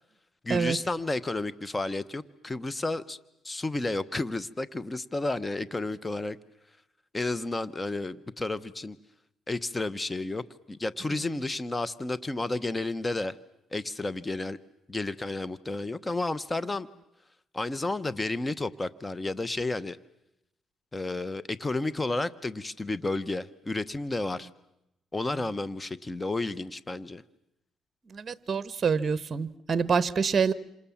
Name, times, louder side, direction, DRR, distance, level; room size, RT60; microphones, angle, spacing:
voice 1, 0.4-3.2 3.4-6.4 7.1-9.0 9.5-13.4 13.7-14.6 14.9-16.9 17.5-20.0 20.9-24.5 25.1-27.2, left 2 dB, 20° left, 18 dB, 1.0 m, -31 dB
voice 2, 28.1-30.5, right 5 dB, 40° right, 17 dB, 1.1 m, -26 dB
28.0 x 26.5 x 7.3 m, 0.87 s
cardioid pair, 90°, 0 cm